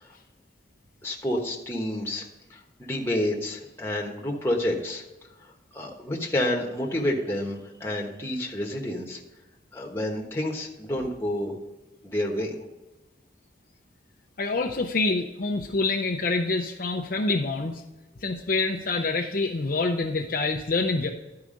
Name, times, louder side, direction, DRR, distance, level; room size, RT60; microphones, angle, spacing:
voice 1, 1.0-2.2 2.5-5.0 5.7-9.2 9.7-11.5 12.0-12.5, left 1 dB, 15° left, 0 dB, 1.2 m, -29 dB
voice 2, 14.4-17.8 18.2-21.1, left 3 dB, 50° left, 1 dB, 0.6 m, -26 dB
11.5 x 4.8 x 5.1 m, 1.1 s
head